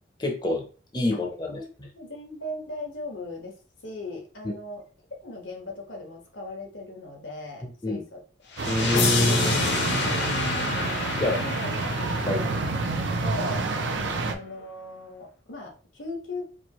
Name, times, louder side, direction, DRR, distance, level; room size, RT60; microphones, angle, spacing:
voice 1, 0.2-0.7 0.9-1.6 7.6-8.0 8.6-9.6 11.2-11.4 12.3-12.4 14.0-14.1, left 2 dB, 25° left, 1 dB, 0.6 m, -27 dB
voice 2, 1.5-4.8 5.2-8.2 9.9-10.2 11.1-12.5 13.2-13.7 14.2-16.5, left 2 dB, 85° left, 1 dB, 1.2 m, -38 dB
sound 1, 8.6-13.5, left 3 dB, 65° left, 0.8 m, -28 dB
sound 2, 8.6-14.3, right 3 dB, 75° right, 0.5 m, -29 dB
4.5 x 2.5 x 3.0 m, 0.36 s
head